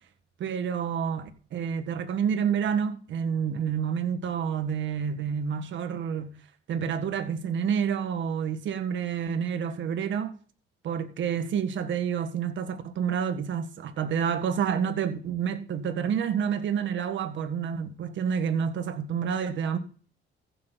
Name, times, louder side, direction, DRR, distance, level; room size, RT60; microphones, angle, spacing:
voice 1, 0.4-6.4 6.7-10.4 10.8-19.8, right 7 dB, 70° right, 1.6 m, -29 dB
15.0 x 6.9 x 4.0 m
cardioid pair, 90°, 20 cm